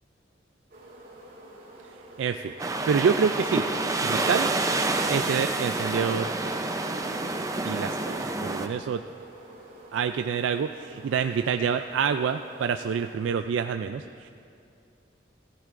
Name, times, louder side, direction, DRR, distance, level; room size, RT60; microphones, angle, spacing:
sound 1, 0.7-13.2, right 1 dB, 55° right, 2.7 m, -48 dB
voice 1, 2.2-3.6 4.1-4.5 5.1-6.3 7.6-9.0 9.9-14.3, right 6 dB, 90° right, 8 dB, 0.3 m, -27 dB
sound 2, 2.6-8.7, right 2 dB, 20° right, 0.5 m, -28 dB
17.0 x 13.5 x 2.5 m, 2.5 s
head